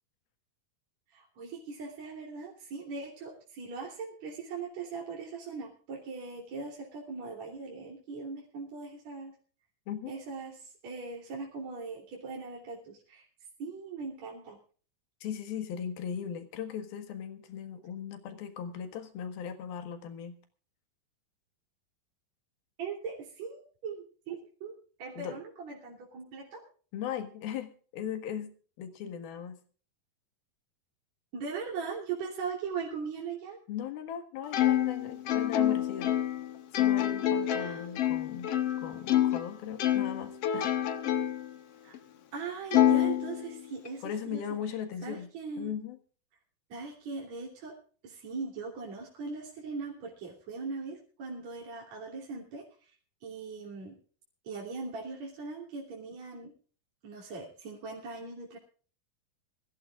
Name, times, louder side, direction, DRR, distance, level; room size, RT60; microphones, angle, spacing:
voice 1, 1.1-9.3 10.1-13.3 13.6-14.6 22.8-26.6 31.3-33.6 37.6-37.8 41.8-42.0 42.3-44.4 45.0-45.7 46.7-47.8 48.0-52.9 53.2-54.0 54.4-56.5 57.0-58.6, right 4 dB, 50° right, -2 dB, 4.3 m, -40 dB
voice 2, 9.9-10.2 15.2-20.4 25.2-25.4 26.9-29.6 33.7-36.2 36.8-38.5 38.8-40.7 44.0-45.3 45.6-46.0, left 8 dB, 80° left, 8 dB, 3.5 m, -38 dB
Plucked string instrument, 34.5-39.5 39.8-41.5 41.9-42.0 42.7-43.9, left 11 dB, 65° left, 1.5 m, -27 dB
24.0 x 15.0 x 2.5 m, 0.41 s
omnidirectional pair, 4.2 m